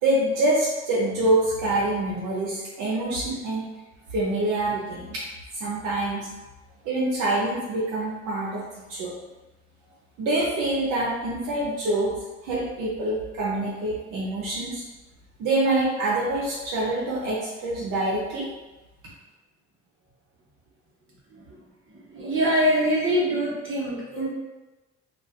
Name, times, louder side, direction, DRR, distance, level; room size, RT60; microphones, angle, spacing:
voice 1, 0.0-3.6 4.1-5.2 5.5-6.3 6.8-9.1 10.2-12.1 12.4-14.8 15.4-18.5, right 1 dB, 90° right, -6 dB, 0.7 m, -25 dB
voice 2, 21.9-24.3, equal, 45° right, -5 dB, 1.0 m, -24 dB
2.4 x 2.3 x 3.4 m, 1.1 s
cardioid pair, 90°, 30 cm